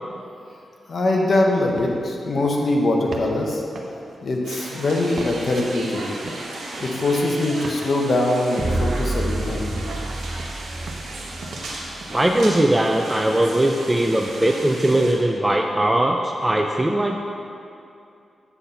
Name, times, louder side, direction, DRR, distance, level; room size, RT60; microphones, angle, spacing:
voice 1, 0.9-3.6 4.2-6.0 6.8-9.8, left 2 dB, 60° left, 0 dB, 1.1 m, -22 dB
sound 1, 1.7-2.0 2.4-2.7 3.1-3.4 3.8-4.2 5.2-5.7 6.0-7.0 7.3-7.8 9.0-9.1 9.4-10.0 10.4-11.8 12.0-12.4, right 3 dB, 60° right, 0.9 m, -39 dB
sound 2, 4.4-15.1, right 2 dB, 85° right, 1.2 m, -35 dB
sound 3, 8.6-12.6, right 2 dB, 40° right, 0.9 m, -28 dB
voice 2, 12.1-17.2, right 1 dB, 15° right, 2 dB, 0.4 m, -20 dB
8.3 x 4.1 x 5.6 m, 2.6 s
cardioid pair, 60°, 0 cm